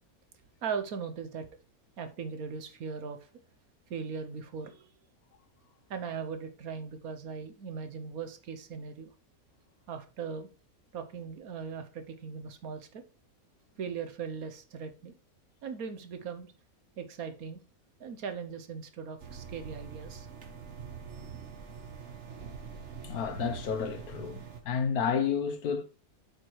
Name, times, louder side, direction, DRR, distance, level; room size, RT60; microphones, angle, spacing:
voice 1, 0.6-1.5 2.0-3.3 3.9-4.9 5.9-9.1 9.9-10.5 10.9-13.0 13.8-15.1 15.6-16.5 17.0-17.6 18.0-20.3, right 6 dB, 75° right, 1.4 m, -39 dB
sound 1, 19.2-24.6, right 6 dB, 55° right, 1.3 m, -44 dB
voice 2, 23.0-25.9, left 6 dB, 85° left, 1.4 m, -31 dB
7.4 x 4.6 x 4.6 m
omnidirectional pair, 1.5 m